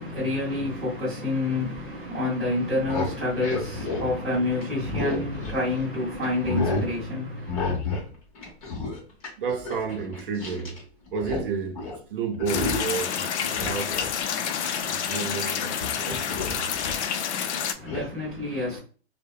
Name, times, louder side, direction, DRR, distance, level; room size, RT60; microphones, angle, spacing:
voice 1, 0.0-7.8 17.7-18.8, left 2 dB, ahead, 0.5 m, -28 dB
sound 1, 2.6-5.9 6.2-6.9 7.5-8.1 8.3-10.8 11.1-11.5 11.7-12.0 12.4-13.0 13.4-15.5 15.8-17.0 17.9-18.1, left 3 dB, 30° left, 0.8 m, -31 dB
voice 2, 9.4-14.2 14.9-16.7, right 5 dB, 50° right, 0.6 m, -32 dB
sound 2, 12.5-17.7, left 8 dB, 80° left, 0.5 m, -28 dB
2.6 x 2.1 x 2.3 m
hypercardioid pair, 160°, 34 cm